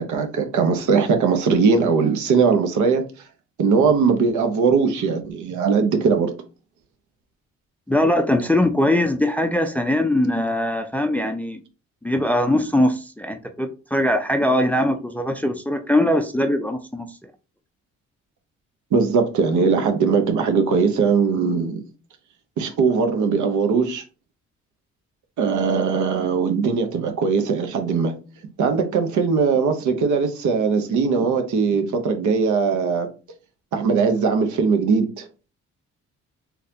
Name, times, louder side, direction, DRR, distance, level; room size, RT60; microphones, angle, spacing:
voice 1, 0.0-3.0 3.6-6.3 18.9-21.8 22.6-24.0 25.4-28.1 28.6-33.1 33.7-35.3, right 5 dB, 75° right, 0.9 m, -20 dB
voice 2, 7.9-11.6 12.0-17.1, left 1 dB, 5° left, 0.4 m, -21 dB
3.9 x 2.9 x 2.7 m
cardioid pair, 90°, 30 cm